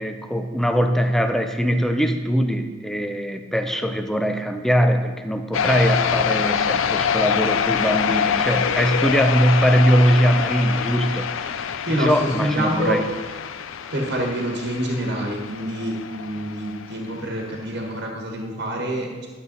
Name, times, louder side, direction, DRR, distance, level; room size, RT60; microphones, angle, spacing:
voice 1, 0.0-11.6 12.0-13.0, equal, ahead, 7 dB, 0.5 m, -21 dB
sound 1, 5.5-17.0, left 7 dB, 75° left, 0.4 m, -25 dB
voice 2, 11.9-13.0 13.9-19.3, right 1 dB, 55° right, 0 dB, 1.4 m, -26 dB
12.0 x 6.6 x 4.0 m, 1.4 s
head